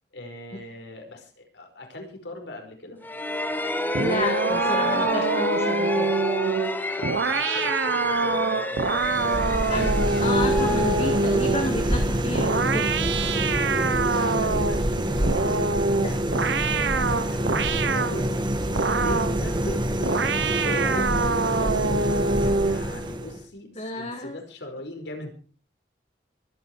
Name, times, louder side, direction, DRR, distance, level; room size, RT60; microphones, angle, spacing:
voice 1, 0.1-3.0 7.0-9.4 10.1-10.7 12.7-12.9 14.0-15.3 17.1-18.3 18.6-20.1 20.4-21.1 21.5-25.3, left 1 dB, 75° left, 4 dB, 5.1 m, -39 dB
sound 1, 3.0-11.7, left 1 dB, 10° left, 1.6 m, -30 dB
sound 2, 3.9-11.8 12.3-14.9 15.2-18.2 18.8-19.4 20.0-22.9, right 4 dB, 80° right, 1.1 m, -25 dB
voice 2, 4.0-6.2 9.7-13.1 16.0-16.2 23.8-24.4, left 2 dB, 35° left, 5 dB, 2.0 m, -31 dB
sound 3, 8.8-23.4, right 1 dB, 25° right, 1.7 m, -26 dB
24.5 x 9.5 x 4.8 m, 0.41 s
head